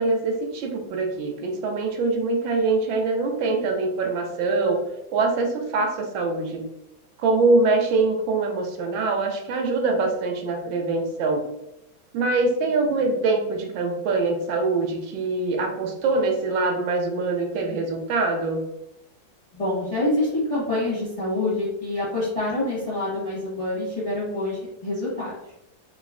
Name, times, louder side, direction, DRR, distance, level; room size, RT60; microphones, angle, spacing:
voice 1, 0.0-4.8 5.1-6.6 7.2-11.5 12.1-18.6, right 3 dB, 85° right, 3 dB, 1.3 m, -24 dB
voice 2, 19.5-25.3, left 2 dB, 30° left, -8 dB, 0.7 m, -26 dB
3.8 x 2.0 x 2.3 m, 0.85 s
omnidirectional pair, 2.1 m